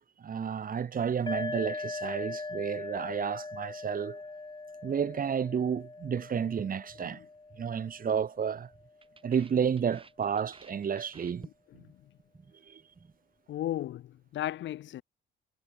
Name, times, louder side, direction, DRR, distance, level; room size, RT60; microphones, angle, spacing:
voice 1, 0.0-4.2 4.8-7.2 7.6-8.7 9.2-11.4 12.7-12.8, right 7 dB, 45° right, 1.7 m, -31 dB
sound 1, 1.3-8.7, left 3 dB, 20° left, 4.0 m, -41 dB
sound 2, 6.6-7.7 8.0-8.3 8.6-11.9 12.2-12.5 12.8-13.2, right 4 dB, 25° right, 2.9 m, -52 dB
voice 2, 11.4-12.0 13.5-15.0, left 13 dB, 70° left, 0.7 m, -36 dB
cardioid pair, 90°, 20 cm